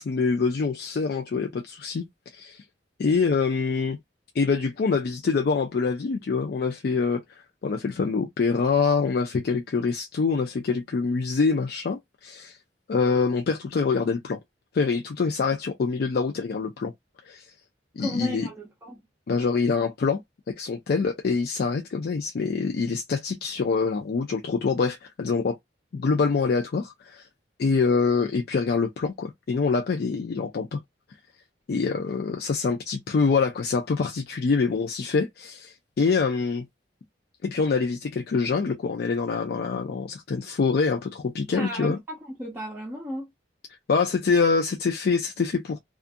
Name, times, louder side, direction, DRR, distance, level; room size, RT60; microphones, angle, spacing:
voice 1, 0.0-2.0 2.3-2.6 3.0-4.0 4.3-7.2 7.6-12.6 12.9-14.4 14.7-16.9 17.3-17.5 18.0-18.5 19.3-20.2 20.6-25.6 25.9-27.3 27.6-30.8 31.7-36.6 37.4-42.0 43.9-45.8, left 4 dB, 60° left, 0.4 m, -25 dB
voice 2, 18.0-19.0 41.5-43.3, equal, 10° right, 0.6 m, -35 dB
2.5 x 2.4 x 2.5 m
head